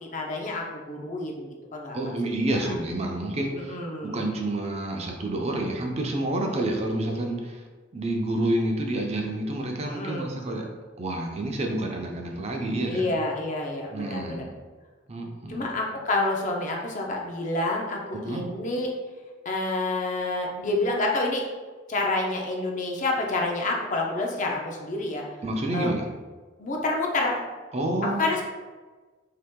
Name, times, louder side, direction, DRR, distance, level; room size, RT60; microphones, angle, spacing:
voice 1, 0.0-2.1 2.5-2.8 3.5-4.2 9.9-10.3 12.9-14.5 15.5-18.9 19.4-21.5 21.9-25.2 25.7-25.9 26.6-27.4 28.1-28.4, left 2 dB, 40° left, 0 dB, 0.5 m, -28 dB
voice 2, 1.9-7.6 7.9-10.7 11.0-13.1 13.9-14.5 15.1-15.7 18.2-18.5 25.4-26.1 27.7-28.3, right 1 dB, 35° right, 2 dB, 0.5 m, -29 dB
2.9 x 2.8 x 3.5 m, 1.3 s
head